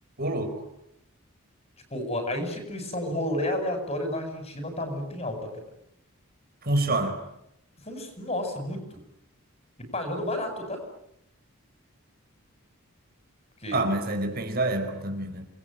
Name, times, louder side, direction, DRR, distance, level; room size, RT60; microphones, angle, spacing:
voice 1, 0.2-0.6 6.6-7.2 13.7-15.5, right 2 dB, 45° right, 6 dB, 4.9 m, -27 dB
voice 2, 1.9-5.5 7.8-8.8 9.9-10.8 13.6-13.9, left 1 dB, 30° left, 6 dB, 7.8 m, -31 dB
29.0 x 22.0 x 9.2 m, 0.80 s
head